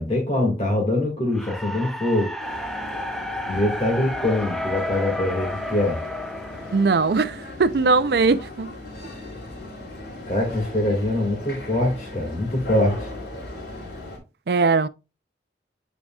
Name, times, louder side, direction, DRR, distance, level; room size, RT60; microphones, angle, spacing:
voice 1, 0.0-2.3 3.5-6.0 10.3-13.1, left 1 dB, 35° left, 2.0 m, -23 dB
sound 1, 1.3-7.5, left 1 dB, ahead, 0.6 m, -32 dB
sound 2, 2.4-14.2, left 2 dB, 70° left, 3.0 m, -37 dB
voice 2, 6.7-8.7 14.5-14.9, right 4 dB, 60° right, 0.5 m, -20 dB
9.4 x 5.0 x 2.3 m
head